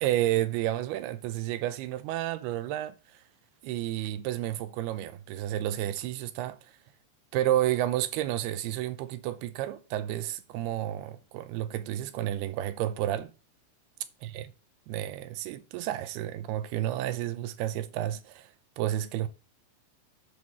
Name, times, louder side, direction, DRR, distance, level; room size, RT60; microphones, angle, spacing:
voice 1, 0.0-2.9 3.6-6.6 7.3-13.3 14.2-14.5 14.9-18.5 18.8-19.3, right 13 dB, 90° right, 2.7 m, -31 dB
9.9 x 3.5 x 6.1 m
omnidirectional pair, 4.5 m